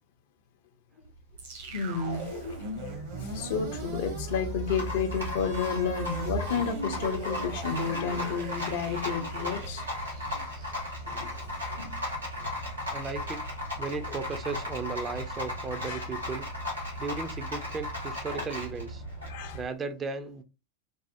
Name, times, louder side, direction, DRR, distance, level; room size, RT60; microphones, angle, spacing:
Rattle, 1.0-19.6, left 1 dB, 85° right, 1.5 m, -36 dB
sound 1, 1.4-11.6, right 3 dB, 60° right, 0.9 m, -39 dB
voice 1, 1.7-9.8 11.0-11.5 11.7-12.0 14.1-14.2 15.8-16.0 18.3-18.4 19.3-19.6, left 6 dB, 55° left, 0.5 m, -32 dB
voice 2, 12.9-13.4 13.8-16.5 17.0-19.0 19.5-20.4, right 4 dB, 20° right, 0.4 m, -36 dB
3.3 x 2.0 x 2.8 m
figure-of-eight pair, 90°, 0 cm